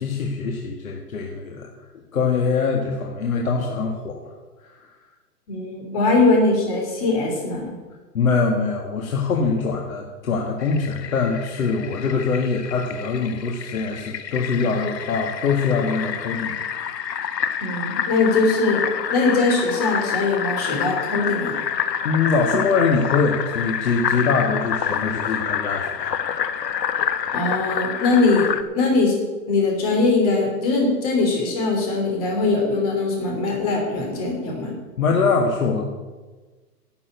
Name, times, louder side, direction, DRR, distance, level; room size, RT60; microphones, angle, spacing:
voice 1, 0.0-1.7 2.1-4.2 4.6-4.9 8.1-16.6 22.0-26.2 35.0-35.9, left 4 dB, 60° left, 1 dB, 1.7 m, -23 dB
voice 2, 5.5-7.6 17.6-18.8 19.1-21.5 27.3-28.5 28.7-29.1 29.5-34.7, left 3 dB, 25° left, 0 dB, 3.0 m, -21 dB
Fill (with liquid), 10.6-28.6, left 8 dB, 90° left, 1.2 m, -28 dB
12.0 x 6.9 x 9.2 m, 1.3 s
hypercardioid pair, 175°, 48 cm